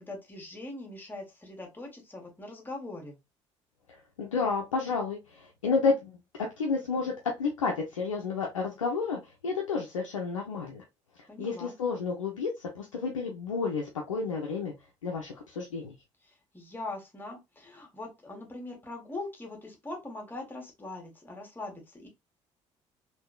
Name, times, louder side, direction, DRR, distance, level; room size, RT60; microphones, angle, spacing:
voice 1, 0.0-3.2 11.3-11.7 16.3-22.1, left 2 dB, 10° left, 1.4 m, -41 dB
voice 2, 3.9-6.2 6.6-10.8 11.4-12.5 12.7-14.7 15.0-15.9, left 4 dB, 80° left, 0.5 m, -31 dB
3.5 x 2.6 x 2.2 m
figure-of-eight pair, 50°, 16 cm